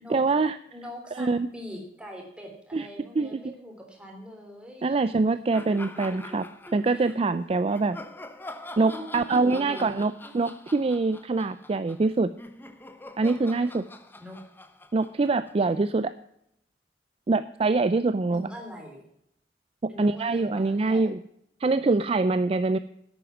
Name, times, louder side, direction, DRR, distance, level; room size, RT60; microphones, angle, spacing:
voice 1, 0.0-0.6 1.2-1.5 2.7-2.9 3.2-3.4 4.8-6.4 6.7-8.0 8.8-12.3 13.2-13.8 14.9-16.1 17.3-18.5 20.0-21.2 21.6-22.8, right 3 dB, 35° right, 13 dB, 0.4 m, -24 dB
voice 2, 0.7-4.9 5.5-5.8 6.7-7.1 8.7-10.6 14.2-14.4 18.3-19.0 19.9-21.1, equal, 5° right, 1 dB, 3.3 m, -42 dB
sound 1, 5.5-7.2 7.7-15.9, left 2 dB, 10° left, 0.9 m, -45 dB
11.0 x 9.1 x 6.0 m, 0.72 s
head